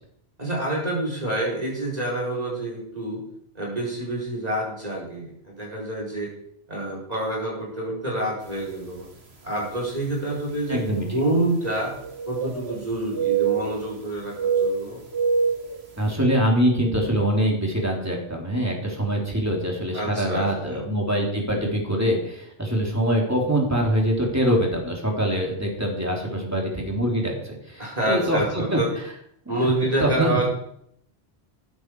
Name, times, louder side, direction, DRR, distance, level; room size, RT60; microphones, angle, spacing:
voice 1, 0.4-3.2 3.5-6.3 6.7-9.1 9.4-11.9 12.3-15.0 19.9-20.8 27.8-28.9 29.5-30.5, right 1 dB, 40° right, -4 dB, 4.4 m, -27 dB
sound 1, 8.7-8.9 9.6-9.7 11.6-12.8 13.1-14.0 14.4-15.8, right 6 dB, 80° right, 2.3 m, -25 dB
voice 2, 10.7-11.1 16.0-28.8 29.5-29.7 30.0-30.4, equal, 15° right, -1 dB, 3.5 m, -24 dB
14.5 x 11.5 x 4.8 m, 0.72 s
omnidirectional pair, 1.1 m